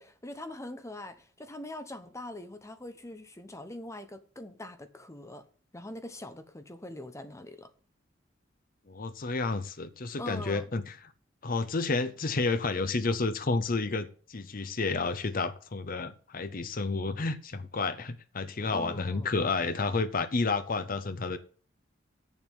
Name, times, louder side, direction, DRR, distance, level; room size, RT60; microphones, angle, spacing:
voice 1, 0.0-5.5 5.7-7.7 10.2-10.7 18.7-19.3, left 1 dB, 15° left, 1.0 m, -42 dB
voice 2, 8.9-10.8 11.4-21.4, left 3 dB, 50° left, 0.8 m, -30 dB
7.9 x 7.3 x 8.1 m
head